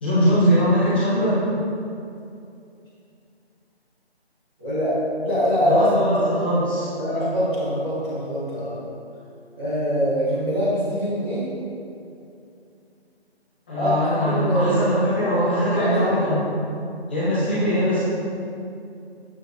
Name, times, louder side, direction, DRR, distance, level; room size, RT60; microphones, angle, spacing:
voice 1, 0.0-1.4 5.6-6.9 13.7-16.4 17.1-18.0, equal, 10° left, -12 dB, 1.4 m, -21 dB
voice 2, 4.6-5.9 6.2-6.4 7.0-8.8 9.6-11.4 13.7-14.8 15.7-16.2, equal, 5° right, -22 dB, 1.0 m, -23 dB
11.0 x 8.9 x 2.9 m, 2.5 s
figure-of-eight pair, 170°, 32 cm